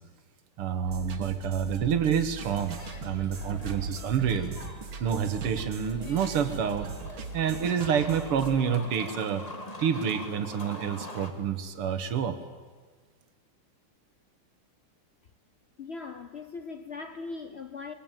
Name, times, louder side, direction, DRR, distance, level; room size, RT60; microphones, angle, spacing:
voice 1, 0.6-4.5 5.0-6.9 7.3-9.4 9.8-12.4, right 7 dB, 85° right, 2.3 m, -28 dB
sound 1, 0.8-8.6, right 4 dB, 65° right, 2.5 m, -39 dB
sound 2, 2.5-11.3, left 2 dB, 20° left, 1.6 m, -44 dB
voice 2, 15.8-17.9, left 4 dB, 80° left, 0.5 m, -39 dB
23.0 x 21.0 x 9.0 m
omnidirectional pair, 2.4 m